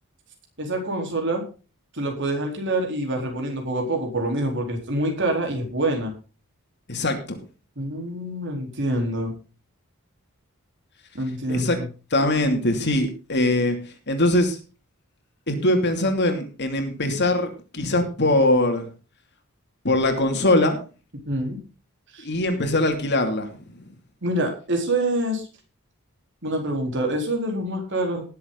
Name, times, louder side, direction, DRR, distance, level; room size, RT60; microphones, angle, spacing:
voice 1, 0.6-1.4 1.9-6.1 7.8-9.3 11.1-11.9 21.3-21.6 22.1-22.3 24.2-25.4 26.4-28.2, right 1 dB, 55° right, 2 dB, 4.0 m, -26 dB
voice 2, 6.9-7.4 11.5-11.8 12.1-13.8 14.1-14.6 15.5-18.9 19.8-20.8 22.2-23.5 23.8-23.9, left 1 dB, 50° left, 5 dB, 2.8 m, -22 dB
19.0 x 7.6 x 4.0 m, 0.34 s
head